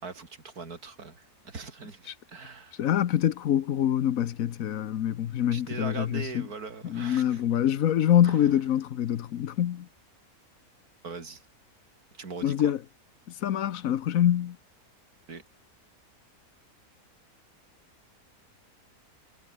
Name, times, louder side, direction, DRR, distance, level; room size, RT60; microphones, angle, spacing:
voice 1, 0.0-2.8 5.5-7.4 8.2-8.5 11.0-11.4 12.2-12.7 15.3-15.4, right 4 dB, 85° right, 3.2 m, -41 dB
voice 2, 2.8-6.5 6.8-9.9 12.4-12.8 13.4-14.6, left 10 dB, 70° left, 1.2 m, -25 dB
omnidirectional pair, 1.6 m